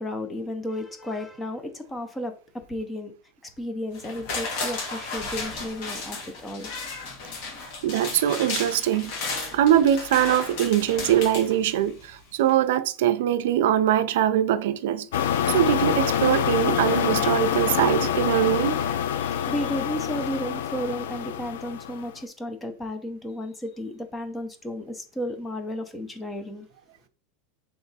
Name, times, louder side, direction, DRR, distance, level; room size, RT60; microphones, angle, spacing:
voice 1, 0.0-3.1 3.6-6.7 19.2-26.7, left 1 dB, 10° left, 0.6 m, -33 dB
sound 1, 3.9-12.1 12.5-12.6, left 3 dB, 55° left, 1.3 m, -34 dB
voice 2, 7.8-9.1 9.5-15.1 15.5-19.0, right 11 dB, 75° right, 0.4 m, -22 dB
sound 2, 15.1-22.1, left 9 dB, 85° left, 0.4 m, -26 dB
3.4 x 2.9 x 4.0 m
supercardioid pair, 160°, 0 cm